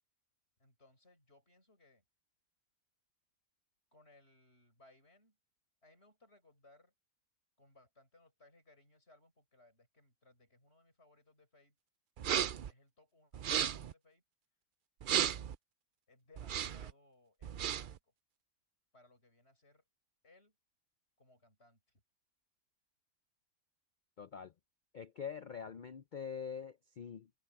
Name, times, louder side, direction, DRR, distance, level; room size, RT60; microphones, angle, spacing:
voice 1, 0.6-2.0 3.9-5.4 5.8-6.9 7.6-11.8 12.7-14.2 16.1-18.1 18.9-19.8 20.2-20.6 21.2-22.0, left 2 dB, 45° left, 7.0 m, -66 dB
sound 1, 12.2-12.7 13.3-13.9 15.0-15.6 16.4-16.9 17.4-18.0, right 9 dB, 70° right, 0.5 m, -34 dB
voice 2, 24.2-24.5 24.9-27.3, left 7 dB, 70° left, 0.4 m, -44 dB
omnidirectional pair, 1.5 m